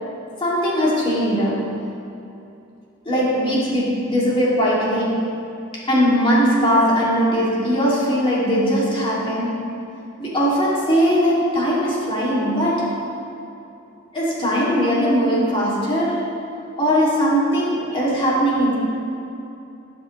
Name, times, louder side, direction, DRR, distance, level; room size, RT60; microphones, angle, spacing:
voice 1, 0.4-1.7 3.0-5.2 5.7-9.5 10.2-13.0 14.1-16.4 16.8-18.7, equal, 25° left, -7 dB, 2.8 m, -20 dB
13.5 x 10.0 x 3.3 m, 2.8 s
head